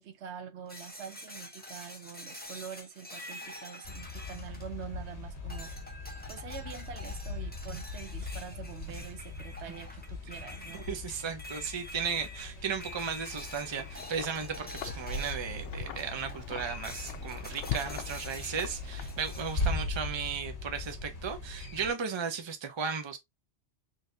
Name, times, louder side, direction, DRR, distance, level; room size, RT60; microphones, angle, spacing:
voice 1, 0.0-5.7 6.3-10.9, right 8 dB, 75° right, 0.9 m, -45 dB
sound 1, 0.7-5.1 5.5-15.6 16.0-16.5 16.8-19.6, left 1 dB, 10° left, 0.8 m, -47 dB
sound 2, 3.8-21.9, left 2 dB, 70° left, 1.6 m, -40 dB
voice 2, 10.7-23.2, right 6 dB, 30° right, 0.6 m, -35 dB
Wind, 13.2-19.7, left 10 dB, 90° left, 0.9 m, -43 dB
4.0 x 3.4 x 2.6 m
omnidirectional pair, 1.2 m